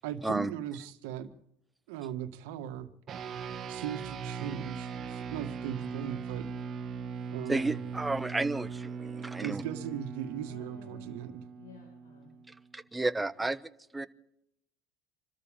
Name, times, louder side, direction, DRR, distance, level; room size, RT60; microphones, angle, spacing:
voice 1, 0.0-1.3 1.9-2.9 3.7-6.5 7.3-7.8 9.4-11.4, right 10 dB, 75° right, 1.9 m, -38 dB
sound 1, 3.1-12.7, right 6 dB, 40° right, 1.8 m, -40 dB
voice 2, 7.5-9.6 12.7-13.6 13.9-14.1, right 2 dB, 10° right, 1.1 m, -31 dB
voice 3, 10.5-11.1 11.4-12.3 13.1-13.2, left 4 dB, 85° left, 5.6 m, -53 dB
27.0 x 13.5 x 3.8 m
hypercardioid pair, 90°, 0 cm